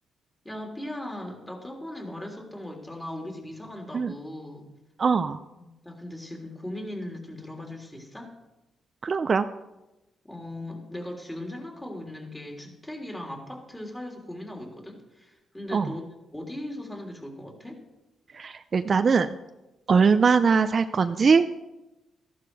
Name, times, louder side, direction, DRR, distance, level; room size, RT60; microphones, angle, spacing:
voice 1, 0.4-4.7 5.6-8.3 10.3-16.1 16.3-17.8, left 1 dB, 10° left, 1 dB, 3.3 m, -38 dB
voice 2, 5.0-5.4 9.0-9.5 15.7-15.9 18.3-19.3 19.9-21.5, right 5 dB, 45° right, 10 dB, 0.5 m, -21 dB
14.5 x 11.5 x 4.8 m, 0.99 s
cardioid pair, 90°, 0 cm